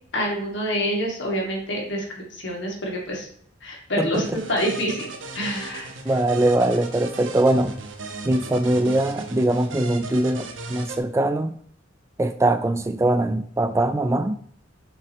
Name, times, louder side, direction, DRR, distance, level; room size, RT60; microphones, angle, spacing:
voice 1, 0.1-3.3 3.6-5.9, equal, 65° left, -1 dB, 2.2 m, -27 dB
sound 1, 4.1-11.0, right 3 dB, 75° right, 1.0 m, -36 dB
voice 2, 6.1-7.7 8.3-11.6 12.2-14.4, right 1 dB, 15° right, 10 dB, 0.3 m, -22 dB
7.5 x 5.8 x 3.0 m, 0.63 s
head